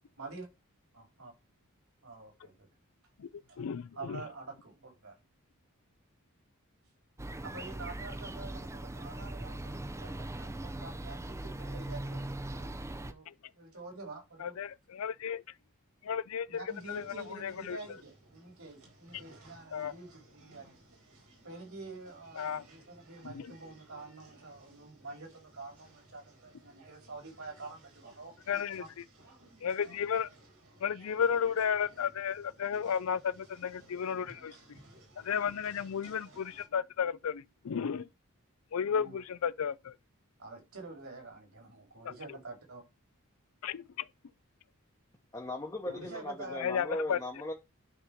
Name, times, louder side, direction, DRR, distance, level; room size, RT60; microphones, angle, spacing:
voice 1, 0.2-0.5 0.9-1.3 2.0-2.7 3.5-3.6 3.9-5.1 7.4-14.6 16.5-20.9 21.4-28.4 28.8-28.9 38.8-39.2 40.4-42.8 45.9-47.2, right 3 dB, 65° right, 4.0 m, -47 dB
voice 2, 3.6-4.2 13.3-13.4 14.4-15.4 16.0-17.1 17.4-17.8 19.7-19.9 22.4-22.6 23.2-23.5 28.5-28.8 29.6-30.3 30.8-34.5 35.2-38.1 38.7-39.9 42.0-42.1 43.6-43.7 46.5-47.2, left 7 dB, 70° left, 0.4 m, -33 dB
sound 1, 7.2-13.1, right 1 dB, 15° right, 0.5 m, -40 dB
sound 2, 16.7-36.7, right 2 dB, 90° right, 4.0 m, -59 dB
voice 3, 45.3-47.5, left 1 dB, 15° left, 1.0 m, -38 dB
9.9 x 4.3 x 5.1 m
head